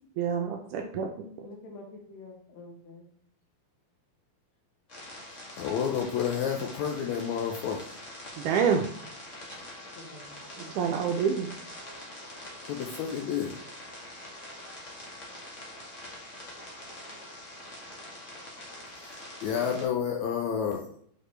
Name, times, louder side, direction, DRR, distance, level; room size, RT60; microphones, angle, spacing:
voice 1, 0.2-1.3 8.4-8.8 10.8-11.5, right 7 dB, 80° right, 2 dB, 1.9 m, -27 dB
voice 2, 1.4-3.1 10.0-10.8, left 2 dB, 60° left, 0 dB, 2.4 m, -47 dB
sound 1, 4.9-19.8, left 1 dB, 45° left, 1.0 m, -44 dB
voice 3, 5.5-7.8 12.6-13.6 19.0-19.1 19.4-20.8, left 8 dB, 85° left, 1 dB, 1.6 m, -30 dB
6.5 x 5.1 x 3.2 m, 0.62 s
omnidirectional pair, 4.1 m